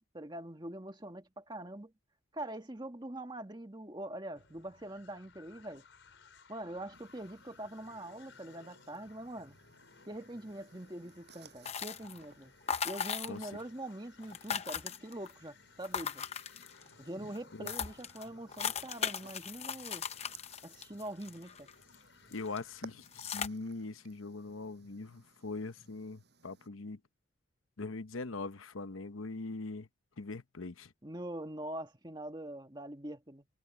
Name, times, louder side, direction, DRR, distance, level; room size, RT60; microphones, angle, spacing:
voice 1, 0.0-1.9 2.3-5.8 6.5-9.6 10.1-12.5 12.8-16.3 17.0-20.1 20.6-21.7 31.0-33.5, right 1 dB, 20° right, 1.7 m, -44 dB
sound 1, 4.3-23.0, left 4 dB, 65° left, 5.0 m, -61 dB
sound 2, 6.9-26.7, right 3 dB, 55° right, 6.9 m, -61 dB
sound 3, 11.7-12.3 12.7-13.6 13.9-14.0 14.2-15.3 15.8-16.9 17.4-17.5 17.7-22.0 22.3-22.6 23.1-23.5, left 7 dB, 30° left, 0.7 m, -38 dB
voice 2, 22.3-27.0 27.8-29.9 30.2-30.9, left 3 dB, 80° left, 0.9 m, -41 dB
head